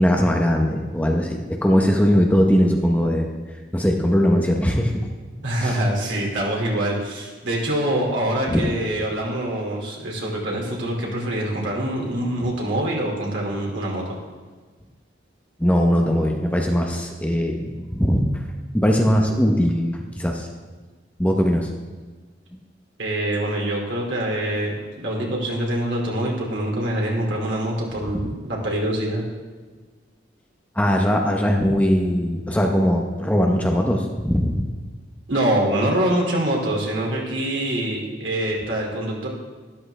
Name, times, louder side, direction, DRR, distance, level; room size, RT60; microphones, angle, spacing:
voice 1, 0.0-3.3 3.7-5.1 5.6-5.8 8.5-8.7 12.4-12.5 15.6-18.4 18.7-20.5 21.2-21.7 30.7-34.7, equal, 10° left, 1 dB, 0.9 m, -20 dB
voice 2, 5.4-14.0 23.0-29.2 35.3-39.3, right 1 dB, 90° right, -2 dB, 2.6 m, -24 dB
13.0 x 11.0 x 3.3 m, 1.4 s
head